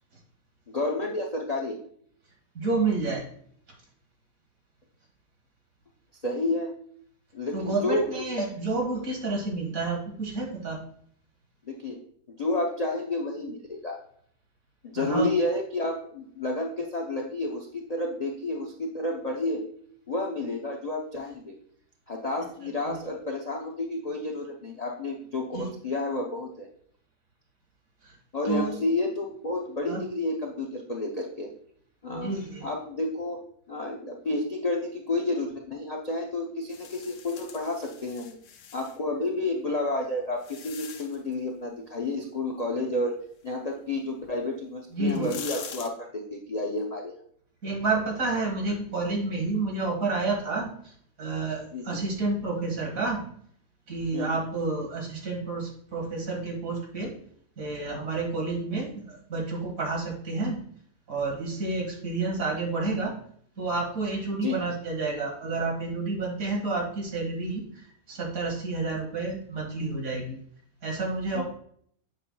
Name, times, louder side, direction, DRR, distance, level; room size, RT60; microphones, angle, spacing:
voice 1, 0.7-1.8 6.2-6.7 7.3-8.3 8.8-8.9 11.6-12.0 12.3-14.0 14.8-19.6 20.1-21.5 22.1-26.7 28.3-31.5 32.0-32.3 32.6-33.4 33.7-38.4 38.7-43.2 43.4-47.2 51.7-52.0 54.1-54.5 64.4-64.6 71.3-71.4, left 2 dB, 65° left, -1 dB, 0.4 m, -30 dB
voice 2, 2.6-3.2 7.5-10.8 15.0-15.3 22.9-23.0 25.5-25.7 28.0-28.1 28.5-28.8 29.9-30.0 32.1-32.7 44.9-45.4 47.6-50.9 51.2-53.2 53.9-57.1 57.6-60.6 61.1-63.1 63.6-70.4 70.8-71.4, right 3 dB, 55° right, -1 dB, 2.2 m, -30 dB
sound 1, 36.7-39.0 39.7-41.3 44.4-44.5 45.0-45.9, left 8 dB, 80° left, 1.3 m, -43 dB
7.8 x 5.6 x 2.2 m, 0.62 s
omnidirectional pair, 1.8 m